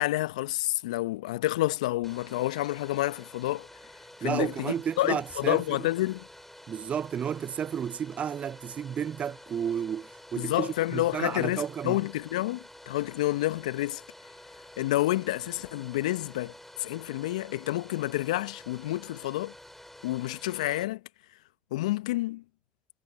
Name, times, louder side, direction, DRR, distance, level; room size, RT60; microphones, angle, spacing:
voice 1, 0.0-3.7 4.2-6.2 10.4-14.0 14.8-19.5 20.0-21.0 21.7-22.4, left 17 dB, 75° left, 1.1 m, -29 dB
Domestic sounds home sounds, 2.0-20.8, left 1 dB, 5° left, 4.1 m, -50 dB
voice 2, 4.2-5.9 6.7-12.0, right 8 dB, 40° right, 0.5 m, -32 dB
figure-of-eight pair, 60°, 4 cm